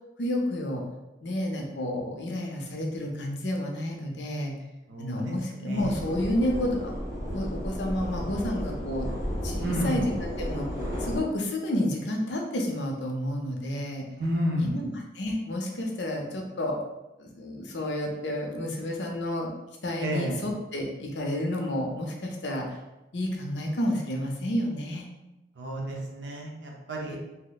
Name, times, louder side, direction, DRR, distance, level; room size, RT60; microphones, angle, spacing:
voice 1, 0.2-0.8 1.2-4.5 5.0-6.9 7.3-9.1 9.4-10.7 11.0-14.0 14.6-16.8 17.2-19.5 19.8-22.7 23.1-25.0 27.1-27.2, left 1 dB, 80° left, 1 dB, 0.6 m, -30 dB
voice 2, 4.9-6.1 9.6-10.0 14.2-14.8 20.0-20.4 25.6-27.2, equal, 75° right, -1 dB, 0.7 m, -31 dB
sound 1, 5.8-11.2, equal, 20° right, 0.9 m, -33 dB
2.8 x 2.1 x 3.9 m, 1.0 s
head